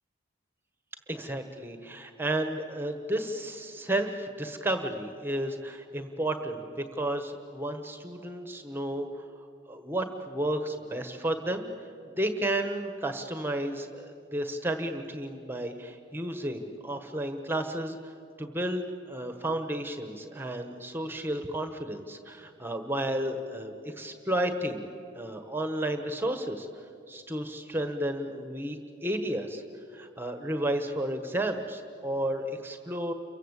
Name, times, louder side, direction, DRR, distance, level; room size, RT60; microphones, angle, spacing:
voice 1, 1.1-11.7 12.2-18.1 18.4-26.7 27.1-29.6 29.9-33.1, right 1 dB, 10° right, 7 dB, 1.3 m, -32 dB
29.5 x 24.0 x 8.2 m, 2.5 s
head